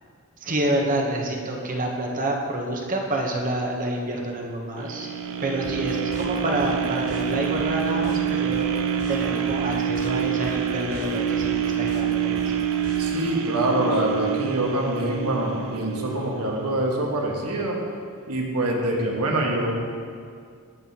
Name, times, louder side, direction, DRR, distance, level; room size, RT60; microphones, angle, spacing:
voice 1, 0.4-5.1 5.4-8.7 9.1-12.6, right 1 dB, 40° right, 1 dB, 0.9 m, -28 dB
sound 1, 4.8-16.9 17.4-17.5, right 8 dB, 65° right, 0.5 m, -27 dB
sound 2, 5.6-13.2, left 1 dB, 90° left, 0.9 m, -41 dB
voice 2, 13.0-17.8 18.3-19.7, right 1 dB, 85° right, -1 dB, 1.4 m, -25 dB
15.0 x 5.6 x 2.9 m, 2.2 s
head